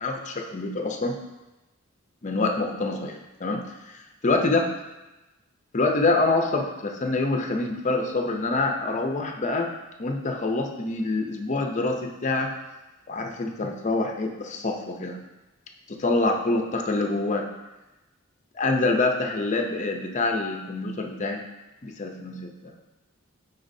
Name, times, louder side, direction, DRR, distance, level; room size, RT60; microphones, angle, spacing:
voice 1, 0.0-1.2 2.2-3.6 4.2-4.7 5.7-9.7 10.0-12.5 13.1-15.2 15.9-17.5 18.5-21.4 21.8-22.7, left 2 dB, 35° left, 3 dB, 0.6 m, -26 dB
9.1 x 4.0 x 2.7 m, 1.0 s
head